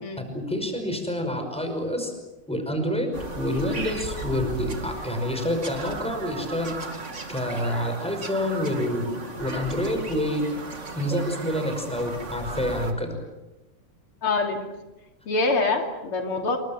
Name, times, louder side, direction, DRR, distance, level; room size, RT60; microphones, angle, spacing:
voice 1, 0.2-2.1 2.5-6.8 7.3-10.4 10.9-13.2, equal, 5° left, 5 dB, 5.5 m, -28 dB
Bird vocalization bird call bird song, 3.1-12.9, right 2 dB, 35° right, 2.6 m, -36 dB
voice 2, 14.2-14.7 15.3-16.6, left 3 dB, 80° left, 3 dB, 3.7 m, -25 dB
29.0 x 23.5 x 7.4 m, 1.0 s
omnidirectional pair, 2.4 m